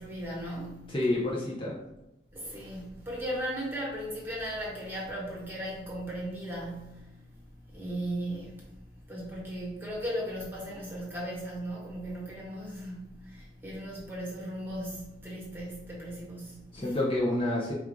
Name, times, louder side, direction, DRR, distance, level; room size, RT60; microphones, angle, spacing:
voice 1, 0.0-0.9 2.3-7.4 7.7-8.6 9.1-17.0, equal, 15° right, -4 dB, 1.2 m, -37 dB
voice 2, 0.9-1.7 16.7-17.7, left 1 dB, 30° left, -4 dB, 0.6 m, -28 dB
4.5 x 2.4 x 3.6 m, 0.94 s
head